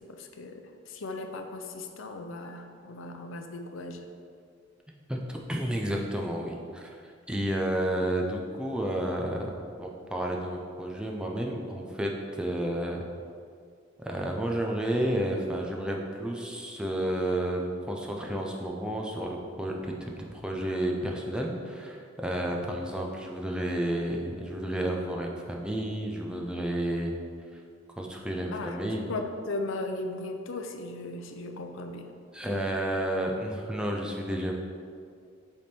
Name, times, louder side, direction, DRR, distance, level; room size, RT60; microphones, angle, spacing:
voice 1, 0.0-4.1 28.5-32.1, left 2 dB, 65° left, 5 dB, 0.5 m, -37 dB
voice 2, 5.1-6.9 7.3-13.0 14.0-27.1 28.0-29.1 32.3-34.5, right 1 dB, 5° right, 0 dB, 0.5 m, -31 dB
7.9 x 3.5 x 4.4 m, 2.3 s
head